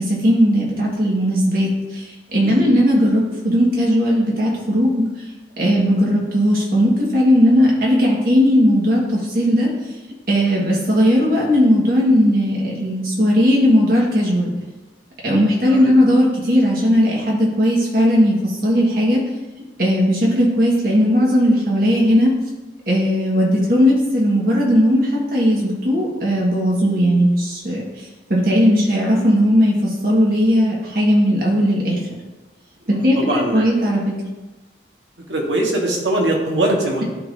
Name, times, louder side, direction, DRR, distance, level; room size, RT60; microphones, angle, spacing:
voice 1, 0.0-5.1 5.6-9.7 10.3-14.5 15.2-19.2 19.8-22.3 22.9-32.0 32.9-34.0, equal, 50° right, -3 dB, 1.6 m, -17 dB
voice 2, 32.9-33.7 35.3-37.1, right 1 dB, 85° right, -1 dB, 1.4 m, -21 dB
11.5 x 3.8 x 2.7 m, 1.1 s
head